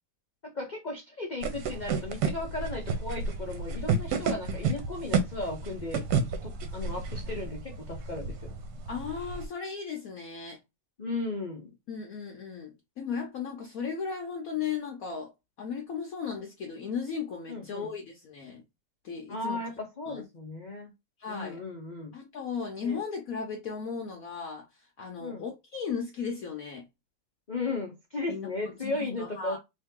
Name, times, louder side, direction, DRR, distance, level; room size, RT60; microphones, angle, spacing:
voice 1, 0.4-6.0 6.4-8.3 11.0-11.7 17.5-17.9 19.3-20.9 21.3-22.1 22.8-23.0 25.2-25.5 27.5-29.6, left 2 dB, 85° left, 0.4 m, -36 dB
sound 1, 1.4-9.5, right 4 dB, 70° right, 1.2 m, -31 dB
voice 2, 8.9-10.6 11.9-15.3 15.6-18.6 19.0-19.6 20.1-20.2 21.2-21.6 22.1-24.7 25.0-26.9 28.3-29.6, left 6 dB, 60° left, 1.0 m, -36 dB
3.1 x 2.7 x 3.6 m
omnidirectional pair, 2.0 m